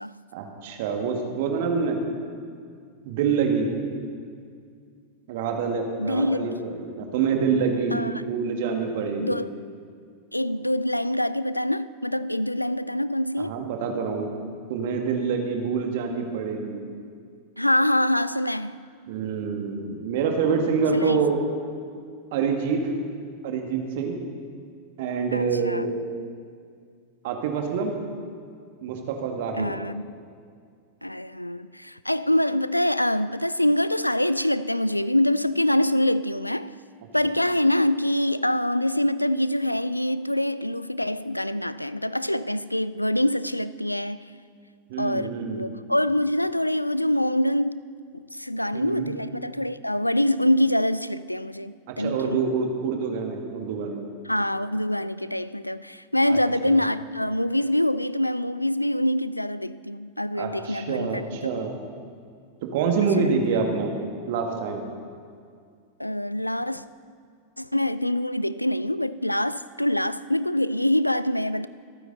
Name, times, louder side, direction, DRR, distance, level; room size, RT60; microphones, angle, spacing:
voice 1, 0.3-2.0 3.0-3.7 5.3-9.4 13.4-14.3 14.7-16.9 19.1-21.4 22.3-22.9 23.4-24.2 25.0-26.0 27.2-27.9 28.8-29.7 44.9-45.6 48.7-49.1 51.9-54.1 56.3-56.4 56.6-56.8 60.4-61.7 62.6-63.9 64.3-64.8, right 5 dB, 50° right, 1.9 m, -26 dB
voice 2, 6.0-6.7 7.9-8.2 9.2-9.5 10.3-13.6 17.6-18.8 20.9-21.2 25.3-25.9 29.6-30.1 31.0-36.8 37.1-44.3 45.0-47.8 48.1-52.4 54.3-61.5 63.2-63.3 66.0-66.8 67.6-71.7, left 1 dB, 85° left, 0.3 m, -25 dB
25.5 x 9.2 x 4.0 m
figure-of-eight pair, 90°, 0 cm